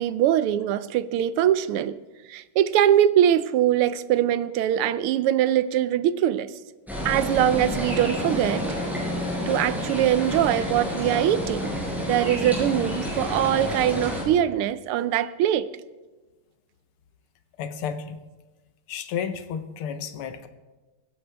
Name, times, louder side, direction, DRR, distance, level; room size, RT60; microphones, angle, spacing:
voice 1, 0.0-2.0 2.3-6.5 7.0-8.7 9.5-15.7, right 11 dB, 85° right, 15 dB, 1.6 m, -22 dB
sound 1, 6.9-14.2, equal, ahead, 5.5 m, -29 dB
voice 2, 17.6-18.2 18.9-20.5, left 7 dB, 80° left, 9 dB, 1.9 m, -32 dB
24.0 x 10.5 x 3.4 m, 1.2 s
omnidirectional pair, 2.4 m